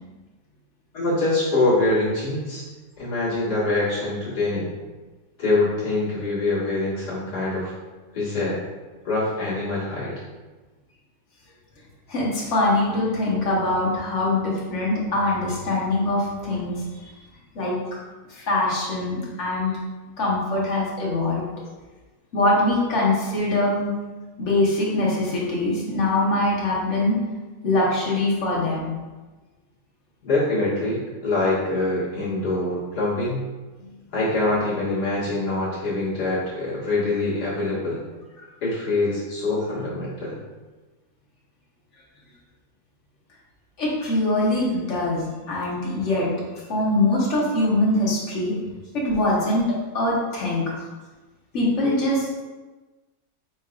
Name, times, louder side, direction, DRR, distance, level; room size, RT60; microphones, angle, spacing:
voice 1, 0.9-2.6 3.0-4.7 5.4-7.7 8.1-8.6 9.0-10.2 30.2-33.4 34.1-38.0 38.6-40.4 48.6-48.7, left 2 dB, 85° left, -9 dB, 2.2 m, -24 dB
voice 2, 12.1-17.1 17.5-17.8 18.3-19.7 20.2-21.4 22.3-23.9 24.4-27.2 27.6-28.9 33.8-33.9 38.4-38.5 43.8-46.3 46.7-48.5 48.9-49.7 49.9-50.7 51.5-52.3, left 2 dB, 50° left, -5 dB, 1.4 m, -23 dB
6.4 x 3.0 x 2.4 m, 1.3 s
omnidirectional pair, 1.7 m